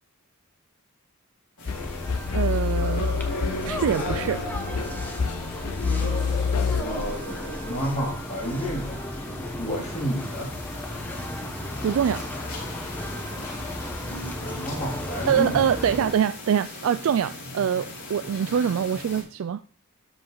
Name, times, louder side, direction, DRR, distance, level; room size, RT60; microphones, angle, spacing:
sound 1, 1.6-19.2, left 1 dB, 60° left, 4.6 m, -38 dB
sound 2, 1.7-6.8, left 5 dB, 85° left, 0.6 m, -27 dB
sound 3, 1.7-16.1, left 1 dB, 10° left, 1.0 m, -35 dB
voice 1, 2.3-3.1 3.7-4.4 11.8-12.3 15.3-19.6, right 8 dB, 65° right, 12 dB, 0.3 m, -24 dB
voice 2, 6.8-10.5 13.3-13.7 14.6-15.6 18.5-18.7, equal, 35° left, -8 dB, 3.0 m, -31 dB
13.0 x 5.0 x 3.9 m, 0.43 s
head